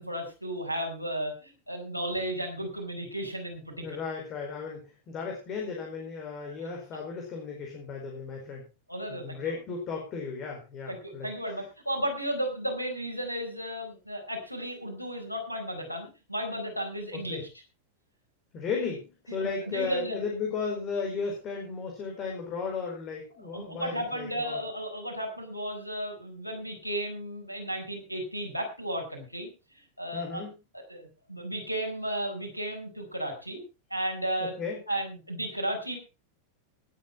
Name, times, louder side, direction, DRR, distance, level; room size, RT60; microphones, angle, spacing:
voice 1, 0.0-4.0 6.5-6.6 8.9-9.5 10.9-17.5 19.3-19.4 19.7-20.2 23.4-29.5 30.0-30.4 30.9-33.6 33.9-34.5 34.9-36.0, right 1 dB, 90° left, 3 dB, 4.5 m, -34 dB
voice 2, 3.8-8.6 9.1-11.3 17.1-17.4 18.5-24.6 30.1-30.5 34.4-34.8, left 5 dB, 35° left, 1 dB, 4.6 m, -35 dB
19.5 x 8.5 x 4.3 m, 0.30 s
figure-of-eight pair, 90°, 0 cm